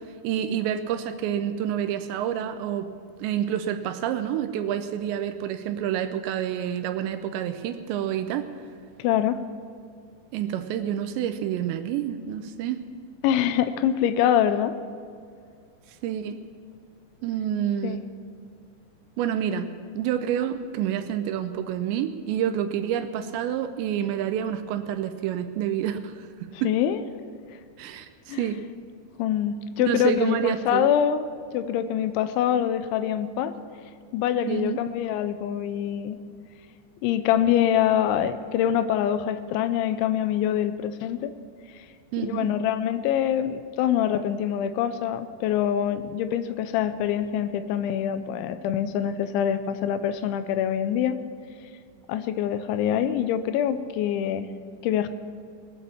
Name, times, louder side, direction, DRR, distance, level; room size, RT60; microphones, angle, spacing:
voice 1, 0.2-2.9 3.2-8.5 10.3-12.8 16.0-16.4 17.2-18.1 19.2-26.7 27.8-28.6 29.8-30.9 34.5-34.8 42.1-42.5, right 10 dB, 80° right, 9 dB, 2.8 m, -28 dB
voice 2, 9.0-9.4 13.2-14.8 17.8-18.0 26.6-27.0 28.3-28.5 29.2-31.3 31.5-33.5 34.1-36.2 37.0-41.3 42.2-51.2 52.1-54.5 54.8-55.1, left 10 dB, 85° left, 11 dB, 3.0 m, -25 dB
20.5 x 8.4 x 7.2 m, 2.3 s
omnidirectional pair, 5.4 m